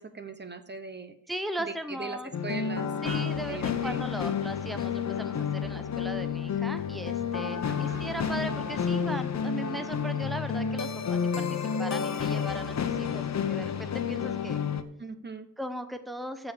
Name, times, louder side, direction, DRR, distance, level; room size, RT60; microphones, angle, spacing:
voice 1, 0.0-1.2 1.6-4.0 7.7-8.1 15.0-15.5, right 4 dB, 35° right, 9 dB, 1.0 m, -40 dB
voice 2, 1.3-2.3 3.0-14.6 15.6-16.5, right 1 dB, ahead, 8 dB, 0.9 m, -38 dB
sound 1, 2.3-14.8, left 7 dB, 55° left, 1.0 m, -30 dB
14.5 x 4.9 x 6.8 m, 0.89 s
wide cardioid pair, 100°, 32 cm